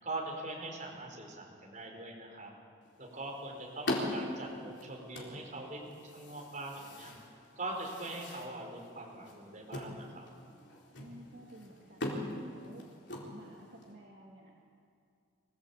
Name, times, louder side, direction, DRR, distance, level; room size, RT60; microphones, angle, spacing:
voice 1, 0.0-2.5 3.0-7.1 7.6-10.3, right 2 dB, 40° right, 0 dB, 4.8 m, -42 dB
sound 1, 2.8-13.9, left 1 dB, 60° left, 4.0 m, -42 dB
voice 2, 10.9-12.8 13.3-14.5, right 1 dB, 60° right, -3 dB, 2.6 m, -54 dB
24.5 x 17.0 x 8.5 m, 2.3 s
head